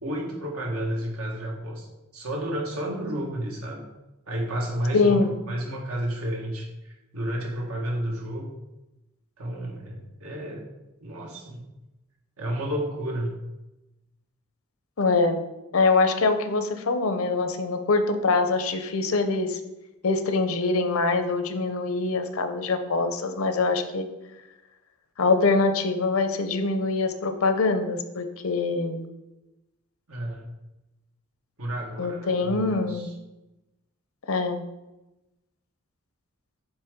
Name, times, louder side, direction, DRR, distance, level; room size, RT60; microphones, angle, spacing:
voice 1, 0.0-1.9 2.1-3.8 4.3-8.6 9.4-10.6 11.0-11.6 12.4-13.3 30.1-30.4 31.6-33.1, right 1 dB, 85° right, -1 dB, 1.6 m, -31 dB
voice 2, 4.9-5.3 15.0-15.4 15.7-19.6 20.0-24.0 25.2-29.1 32.0-33.1 34.3-34.6, left 3 dB, 75° left, 8 dB, 0.7 m, -24 dB
7.3 x 3.5 x 5.1 m, 0.99 s
head